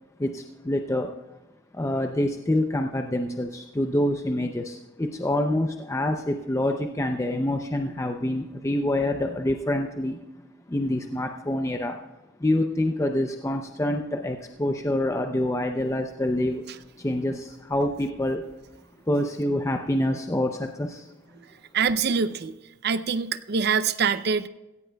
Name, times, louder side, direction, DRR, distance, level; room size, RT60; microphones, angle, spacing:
voice 1, 0.2-1.1 1.7-10.2 10.7-12.0 12.4-16.6 17.0-18.4 19.1-21.1, left 1 dB, 15° left, 4 dB, 0.5 m, -26 dB
voice 2, 21.7-22.5 22.8-24.5, right 6 dB, 50° right, 13 dB, 0.5 m, -24 dB
16.5 x 15.5 x 2.3 m, 1.0 s
head